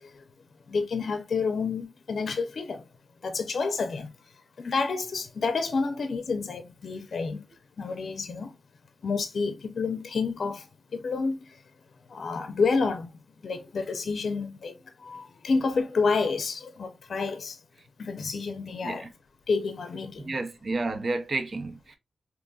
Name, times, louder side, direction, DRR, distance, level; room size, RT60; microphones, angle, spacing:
voice 1, 0.7-2.8 3.2-4.1 4.6-7.4 7.8-8.5 9.0-10.6 10.9-11.3 12.1-13.1 13.4-14.7 15.0-17.6 18.0-19.1 19.5-20.4, left 4 dB, 70° left, 0.5 m, -29 dB
voice 2, 20.3-22.0, right 3 dB, 55° right, 0.6 m, -31 dB
3.7 x 2.9 x 2.3 m
wide cardioid pair, 80°, 0 cm